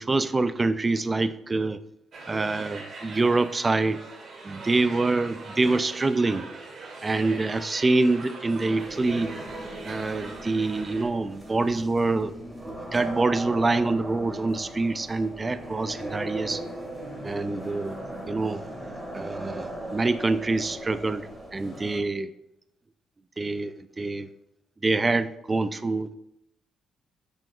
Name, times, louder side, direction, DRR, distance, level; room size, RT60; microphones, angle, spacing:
voice 1, 0.0-1.8 2.3-4.0 4.4-6.5 7.0-9.3 9.8-12.3 12.7-16.6 17.2-18.0 18.3-18.7 19.1-22.3 23.4-24.3 24.8-26.1, right 3 dB, 25° right, 13 dB, 0.4 m, -26 dB
sound 1, 2.1-11.0, right 3 dB, 50° right, 1.5 m, -42 dB
sound 2, 8.8-22.0, right 1 dB, 5° right, 1.9 m, -38 dB
6.7 x 6.1 x 2.4 m, 0.79 s
cardioid pair, 90°, 0 cm